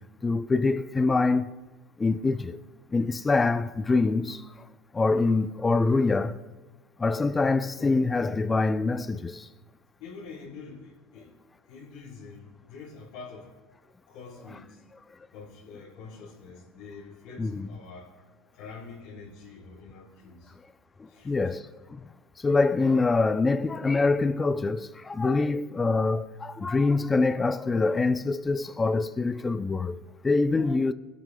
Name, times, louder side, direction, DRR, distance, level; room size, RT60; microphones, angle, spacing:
voice 1, 0.2-1.5 2.0-2.6 2.9-4.4 4.9-6.4 7.0-9.5 17.4-17.7 21.2-21.7 21.9-22.0 22.4-30.0 30.2-30.9, left 3 dB, 15° left, 0.4 m, -25 dB
voice 2, 10.0-11.4 11.7-13.5 14.1-14.8 15.3-18.1 18.5-20.5 21.1-21.3, left 4 dB, 75° left, 3.7 m, -45 dB
21.5 x 12.5 x 2.2 m
supercardioid pair, 120°, 0 cm